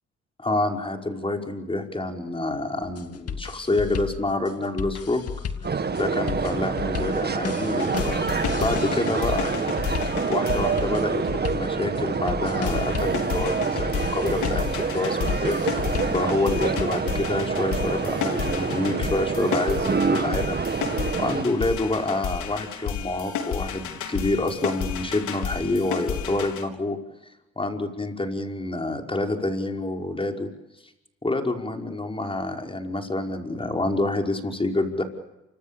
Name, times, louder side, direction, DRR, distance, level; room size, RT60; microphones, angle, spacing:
voice 1, 0.4-5.2 5.9-9.7 10.3-15.6 16.1-20.6 21.2-27.0 27.6-30.5 31.2-35.0, left 2 dB, 20° left, 3 dB, 5.5 m, -27 dB
sound 1, 2.8-16.8, left 7 dB, 55° left, 2.3 m, -34 dB
sound 2, 5.6-21.4, right 5 dB, 35° right, 2.2 m, -27 dB
sound 3, 7.8-11.5 12.7-26.6, left 8 dB, 75° left, 3.9 m, -32 dB
29.0 x 26.0 x 7.1 m, 0.94 s
cardioid pair, 90°, 30 cm